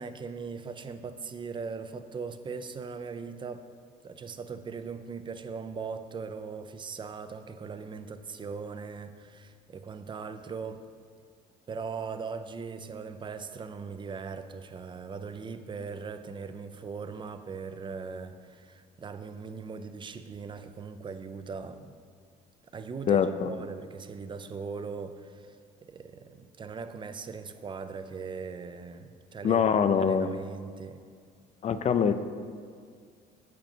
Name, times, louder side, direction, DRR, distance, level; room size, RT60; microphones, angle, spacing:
voice 1, 0.0-3.7 4.0-10.9 11.7-21.9 22.7-25.6 25.8-29.6 29.9-31.0, right 5 dB, 30° right, 10 dB, 0.5 m, -39 dB
voice 2, 23.1-23.5 29.4-30.3 31.6-32.1, left 7 dB, 40° left, 11 dB, 0.5 m, -24 dB
8.3 x 7.9 x 4.4 m, 2.1 s
cardioid pair, 110°, 17 cm